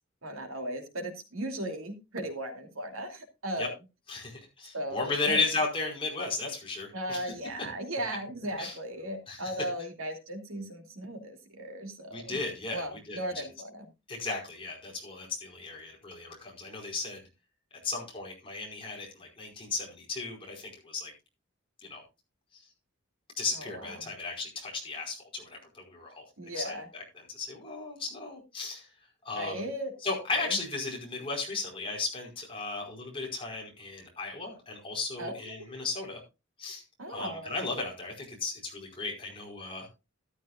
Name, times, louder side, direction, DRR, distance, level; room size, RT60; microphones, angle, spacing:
voice 1, 0.2-3.7 4.7-5.4 6.9-12.4 12.7-13.8 23.6-24.1 26.4-26.9 29.3-29.9 30.3-30.6 35.2-35.7 37.0-37.6, right 1 dB, 85° right, 4 dB, 2.7 m, -37 dB
voice 2, 4.1-7.3 7.6-7.7 8.6-8.8 9.3-9.5 12.1-13.5 14.1-17.2 17.8-21.1 21.8-22.0 22.5-22.6 23.4-26.2 26.5-28.9 29.2-29.6 30.0-36.2 36.6-36.8 37.1-39.9, left 3 dB, 25° left, 0 dB, 4.9 m, -35 dB
13.0 x 13.0 x 2.4 m, 0.27 s
head